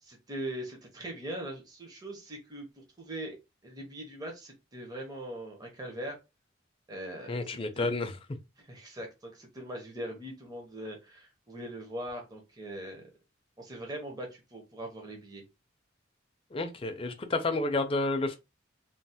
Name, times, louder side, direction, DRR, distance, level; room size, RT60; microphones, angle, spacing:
voice 1, 0.0-3.4 3.6-6.1 6.9-7.9 8.6-13.0 13.6-15.4, right 1 dB, 20° right, 0.6 m, -41 dB
voice 2, 7.3-8.1 16.5-18.4, left 2 dB, 30° left, 0.4 m, -30 dB
3.1 x 2.0 x 2.7 m
head